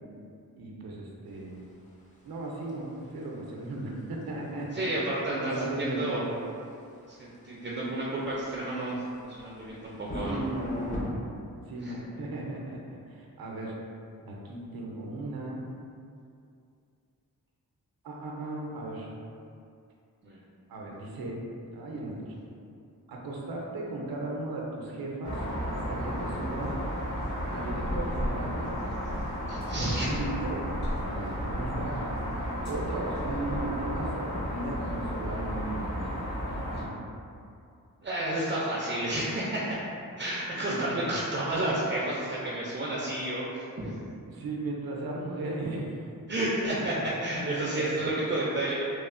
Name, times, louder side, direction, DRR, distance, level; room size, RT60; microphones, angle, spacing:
voice 1, 0.6-1.6 2.2-4.9 5.4-6.2 10.3-11.0 11.7-13.7 14.2-15.6 18.0-19.1 20.7-21.4 21.7-22.4 23.1-25.4 25.7-26.8 27.5-28.6 29.8-30.7 31.0-32.0 32.7-35.9 36.5-37.1 40.7-40.8 41.6-41.9 44.3-45.9 46.9-47.0 47.4-47.9, right 2 dB, 80° right, -2 dB, 0.5 m, -36 dB
sound 1, 1.3-11.1, left 1 dB, 20° left, 0.5 m, -42 dB
voice 2, 4.7-6.2 7.1-10.4 11.8-12.0 20.2-20.4 29.5-30.1 38.0-39.8 40.2-43.9 46.3-48.8, right 1 dB, 30° right, -6 dB, 0.4 m, -31 dB
sound 2, 25.2-36.8, equal, 80° left, 1.2 m, -33 dB
3.0 x 2.0 x 2.4 m, 2.5 s
cardioid pair, 70°, 35 cm